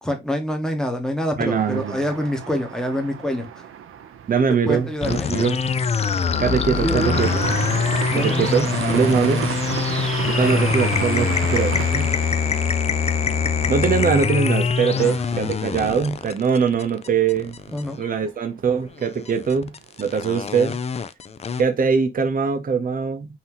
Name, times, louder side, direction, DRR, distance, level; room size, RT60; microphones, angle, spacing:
voice 1, 0.0-3.7 4.7-5.3 6.7-7.2 8.1-8.5 8.9-9.1 15.0-15.5 17.7-18.0, equal, 5° left, 1.0 m, -26 dB
voice 2, 1.4-2.0 4.3-5.6 6.4-7.3 8.1-9.5 10.3-12.1 13.7-17.5 18.0-20.8 21.6-23.3, right 6 dB, 45° right, 0.7 m, -22 dB
sound 1, 1.5-15.3 15.6-15.7 16.1-16.6, right 8 dB, 85° right, 0.6 m, -32 dB
sound 2, 5.0-18.1 19.0-21.6, left 6 dB, 30° left, 0.3 m, -24 dB
5.7 x 2.8 x 2.9 m
wide cardioid pair, 160°, 21 cm